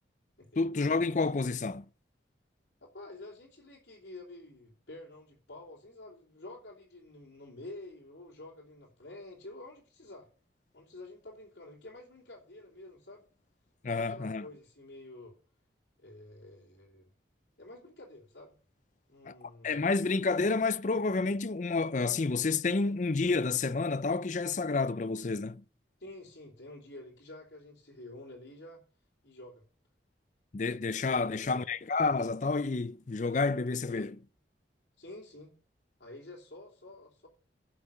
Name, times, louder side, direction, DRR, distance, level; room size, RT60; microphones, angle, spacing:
voice 1, 0.6-1.8 13.8-14.4 19.3-19.4 19.6-25.6 30.5-34.2, left 3 dB, 40° left, 0.5 m, -29 dB
voice 2, 2.8-10.3 10.7-13.3 13.8-15.4 16.0-17.1 17.6-18.5 19.1-19.8 26.0-28.8 29.2-29.6 31.1-31.7 33.8-34.1 35.0-35.5 36.0-37.3, left 2 dB, 70° left, 3.4 m, -49 dB
11.0 x 7.2 x 6.7 m
head